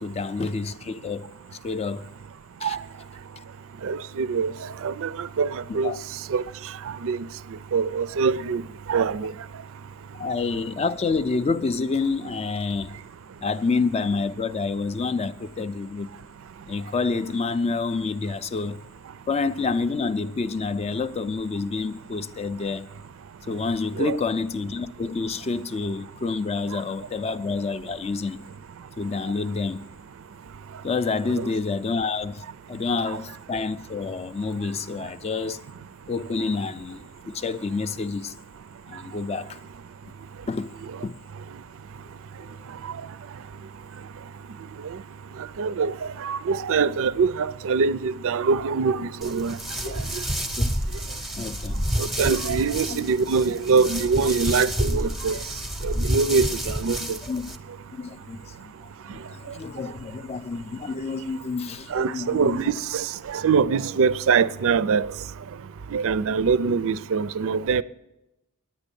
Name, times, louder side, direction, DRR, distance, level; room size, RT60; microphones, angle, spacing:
voice 1, 0.0-1.3 1.6-2.1 2.6-2.8 5.8-6.0 9.0-9.1 10.2-12.9 13.4-16.1 16.7-18.8 19.3-22.9 23.5-28.4 29.0-29.8 30.8-35.6 36.1-38.3 38.9-39.6 40.5-40.7 41.0-41.2 49.8-50.0 50.6-50.7 51.4-51.8 52.6-53.0 57.2-57.5 57.9-58.7 59.1-62.7, left 4 dB, 30° left, 0.3 m, -28 dB
voice 2, 3.8-4.5 4.8-5.9 6.3-6.4 7.0-7.2 7.7-8.6 8.9-9.3 24.0-24.2 31.3-31.5 45.6-45.9 46.2-49.6 50.1-50.2 52.0-55.4 55.8-57.2 61.9-65.1 65.9-67.8, right 5 dB, 65° right, 0.4 m, -23 dB
sound 1, 49.2-57.6, equal, ahead, 0.7 m, -29 dB
9.9 x 9.0 x 6.8 m
head